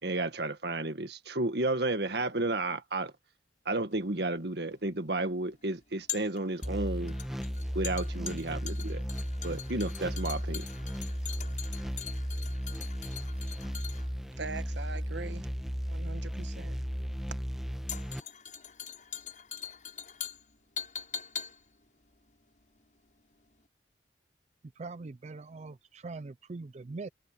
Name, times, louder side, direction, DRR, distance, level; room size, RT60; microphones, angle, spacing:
voice 1, 0.0-3.1 3.7-7.2 7.7-9.0 9.4-10.7, right 2 dB, 65° right, 1.9 m, -32 dB
sound 1, 3.9-23.2 23.5-23.6, left 8 dB, 45° left, 6.6 m, -43 dB
sound 2, 6.6-18.2, equal, ahead, 1.5 m, -35 dB
voice 2, 14.4-15.5 15.9-16.8, right 4 dB, 85° right, 1.1 m, -41 dB
voice 3, 24.8-27.1, right 3 dB, 40° right, 0.4 m, -42 dB
head